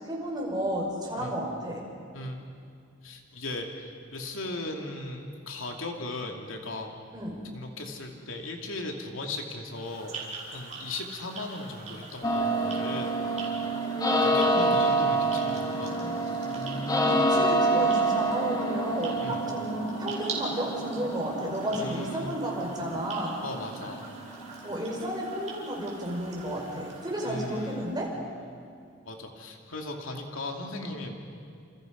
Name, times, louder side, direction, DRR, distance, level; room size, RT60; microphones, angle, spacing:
voice 1, 0.1-1.8 7.1-7.4 13.9-14.7 17.0-23.4 24.6-28.1, equal, 20° right, -2 dB, 5.5 m, -32 dB
voice 2, 3.0-6.9 7.5-10.2 10.5-13.5 14.2-15.9 19.2-19.4 21.7-22.3 23.4-24.1 27.2-27.8 29.0-31.1, left 2 dB, 85° left, 2 dB, 2.8 m, -37 dB
sound 1, 9.7-28.2, right 3 dB, 35° right, 5.0 m, -44 dB
sound 2, 12.2-26.1, right 2 dB, 20° left, 1.4 m, -28 dB
29.0 x 28.0 x 5.4 m, 2.3 s
head